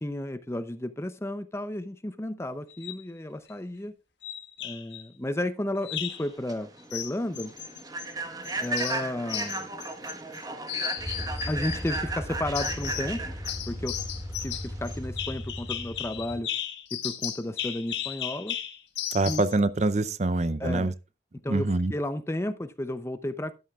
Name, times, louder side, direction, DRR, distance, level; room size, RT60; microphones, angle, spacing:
voice 1, 0.0-3.9 4.6-7.5 8.6-9.7 11.5-13.4 13.7-14.0 14.4-16.5 16.9-18.6 19.2-19.4 20.6-20.9 21.4-23.5, left 1 dB, 15° left, 0.6 m, -33 dB
sound 1, 2.7-3.0 4.2-5.0 5.8-6.3 6.9-8.1 8.4-10.4 10.7-12.0 12.5-13.1 13.4-19.5, left 11 dB, 85° left, 1.5 m, -35 dB
Human voice / Train, 6.2-15.1, right 3 dB, 20° right, 1.3 m, -35 dB
sound 2, 11.0-16.4, equal, 5° right, 2.2 m, -37 dB
voice 2, 19.1-20.9 21.5-21.9, right 2 dB, 40° right, 0.6 m, -25 dB
12.5 x 11.0 x 2.4 m
head